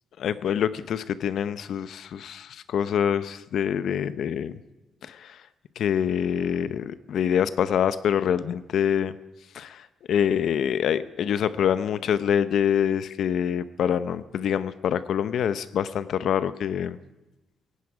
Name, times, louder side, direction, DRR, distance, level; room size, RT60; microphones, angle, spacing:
voice 1, 0.2-4.5 5.1-5.3 5.8-9.1 9.5-9.8 10.1-17.0, left 8 dB, 70° left, 14 dB, 0.7 m, -25 dB
18.0 x 16.0 x 4.9 m, 1.1 s
cardioid pair, 90°, 0 cm